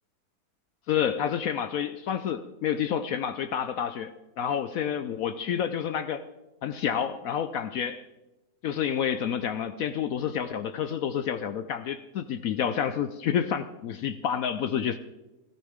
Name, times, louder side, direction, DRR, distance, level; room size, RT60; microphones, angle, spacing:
voice 1, 0.9-6.2 6.6-8.0 8.6-15.0, left 8 dB, 70° left, 11 dB, 0.9 m, -29 dB
16.0 x 14.5 x 3.6 m, 1.0 s
omnidirectional pair, 1.8 m